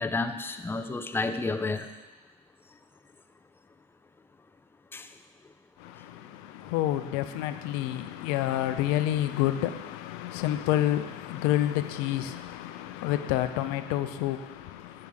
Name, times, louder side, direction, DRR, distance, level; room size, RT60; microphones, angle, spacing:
voice 1, 0.0-1.9 4.9-5.1, left 3 dB, 10° left, 0.4 m, -30 dB
voice 2, 5.8-15.1, left 13 dB, 90° left, 0.5 m, -29 dB
7.6 x 6.6 x 3.5 m
supercardioid pair, 100°, 20 cm